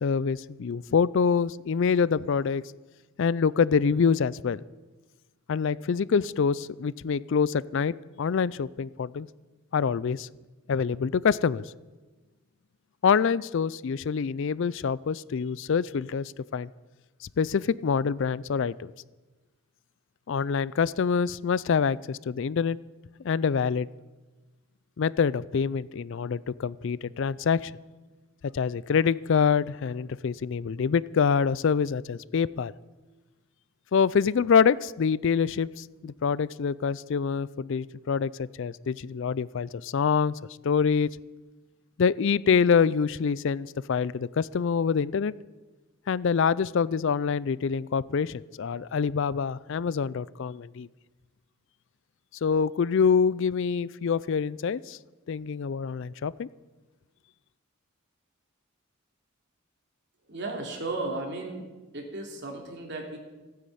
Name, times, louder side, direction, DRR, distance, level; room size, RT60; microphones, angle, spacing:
voice 1, 0.0-2.6 3.2-4.6 5.5-9.3 9.7-10.3 10.7-11.6 13.0-16.7 17.4-18.9 20.3-22.8 23.2-23.9 25.0-27.7 28.5-32.7 33.9-41.1 42.0-45.3 46.1-50.9 52.4-55.0 55.3-56.5, left 6 dB, 60° left, 20 dB, 0.4 m, -26 dB
voice 2, 60.3-61.6 61.9-63.2, right 2 dB, 55° right, 1 dB, 3.1 m, -34 dB
16.0 x 9.5 x 8.5 m, 1.2 s
head